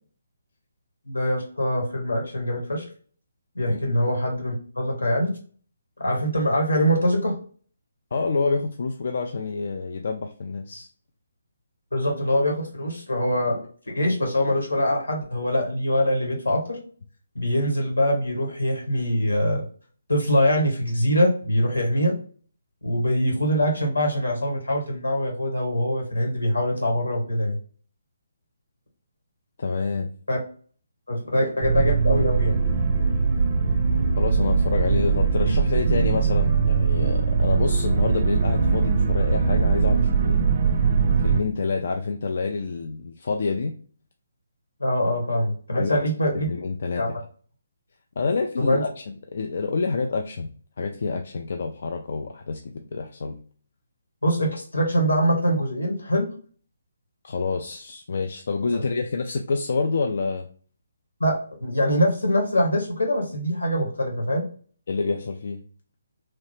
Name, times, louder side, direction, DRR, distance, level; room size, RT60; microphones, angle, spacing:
voice 1, 1.0-2.8 3.5-5.3 6.0-7.3 11.9-13.6 13.9-16.8 17.3-19.6 20.1-22.1 22.8-27.6 30.3-30.4 31.1-32.6 44.8-46.5 46.9-47.1 48.6-48.8 54.2-56.3 58.7-58.8 61.2-64.4, equal, 85° left, 0 dB, 1.3 m, -23 dB
voice 2, 8.1-10.9 29.6-30.1 34.2-40.4 41.2-43.7 45.7-46.0 46.5-47.0 48.2-48.9 49.3-50.5 50.8-53.3 57.2-60.5 64.9-65.6, left 4 dB, 60° left, 3 dB, 0.3 m, -27 dB
sound 1, 31.6-41.4, right 5 dB, 45° right, 0.4 m, -21 dB
2.9 x 2.0 x 3.1 m, 0.42 s
figure-of-eight pair, 145°, 0 cm